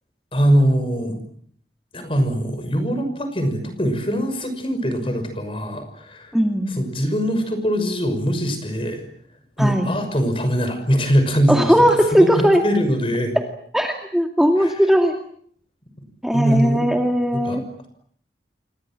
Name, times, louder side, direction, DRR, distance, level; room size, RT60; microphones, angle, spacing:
voice 1, 0.3-1.2 1.9-6.3 6.7-9.1 9.6-13.4 14.6-14.8 16.3-16.9 17.3-17.6, equal, 30° left, 8 dB, 6.0 m, -22 dB
voice 2, 6.3-6.7 9.6-9.9 11.5-12.6 13.7-15.1 16.2-17.6, equal, ahead, 3 dB, 2.3 m, -18 dB
28.5 x 24.5 x 7.6 m, 0.63 s
head